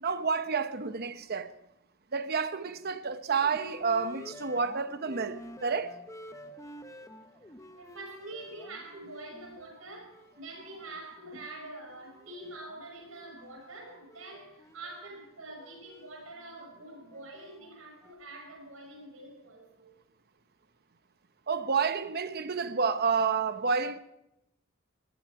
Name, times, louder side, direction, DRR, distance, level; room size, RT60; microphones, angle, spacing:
voice 1, 0.0-1.5 2.1-6.0 21.5-24.0, right 5 dB, 50° right, 0.8 m, -29 dB
sound 1, 3.4-11.1 11.5-18.1, left 1 dB, 15° left, 0.9 m, -51 dB
voice 2, 7.8-19.9, right 2 dB, 85° right, 6.5 m, -45 dB
19.5 x 13.5 x 4.8 m
head